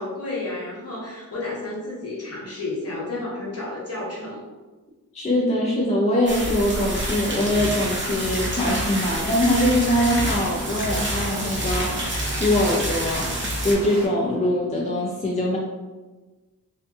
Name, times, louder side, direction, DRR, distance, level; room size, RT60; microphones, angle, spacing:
voice 1, 0.0-4.4, left 2 dB, 45° left, -5 dB, 1.0 m, -31 dB
voice 2, 5.1-15.6, left 1 dB, 20° left, -4 dB, 0.4 m, -23 dB
sound 1, 6.3-13.7, right 1 dB, 30° right, 0.8 m, -28 dB
sound 2, 6.7-14.1, right 2 dB, 70° right, 0.6 m, -37 dB
2.7 x 2.5 x 2.3 m, 1.2 s
cardioid pair, 55°, 36 cm